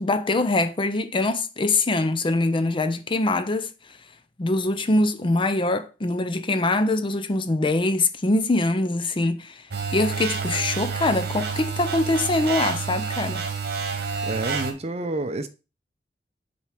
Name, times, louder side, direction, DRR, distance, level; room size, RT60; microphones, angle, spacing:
voice 1, 0.0-3.7 4.4-9.6 9.9-13.4, left 2 dB, 30° left, 0.5 m, -23 dB
sound 1, 9.7-14.7, right 5 dB, 65° right, 1.3 m, -29 dB
voice 2, 14.2-15.5, right 2 dB, 40° right, 0.7 m, -29 dB
6.7 x 4.3 x 4.9 m
head